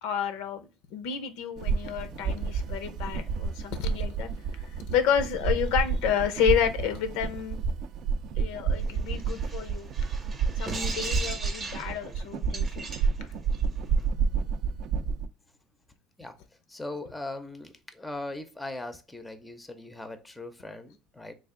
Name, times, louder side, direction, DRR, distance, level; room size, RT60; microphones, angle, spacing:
voice 1, 0.0-7.6 8.4-9.9 10.6-12.9, left 8 dB, 85° left, 0.6 m, -30 dB
sound 1, 1.6-15.3, right 5 dB, 60° right, 0.4 m, -29 dB
sound 2, 8.7-14.1, right 3 dB, 25° right, 0.7 m, -39 dB
voice 2, 16.7-21.3, left 2 dB, 10° left, 0.6 m, -39 dB
3.3 x 2.4 x 3.6 m
cardioid pair, 130°, 0 cm